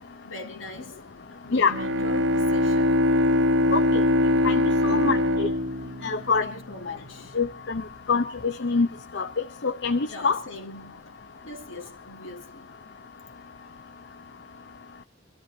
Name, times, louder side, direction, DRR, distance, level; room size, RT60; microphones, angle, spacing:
voice 1, 0.2-1.0 1.3-3.1 4.8-5.4 6.4-7.4 10.0-11.1 11.4-12.8, left 2 dB, 80° left, 2.6 m, -42 dB
Bowed string instrument, 1.7-6.9, left 1 dB, 65° right, 0.9 m, -23 dB
voice 2, 3.7-4.0 4.4-5.5 6.0-6.5 6.9-7.0 7.3-7.8 8.1-8.9 9.1-9.3 9.6-10.4, left 4 dB, 60° left, 0.7 m, -25 dB
24.0 x 13.5 x 4.2 m
head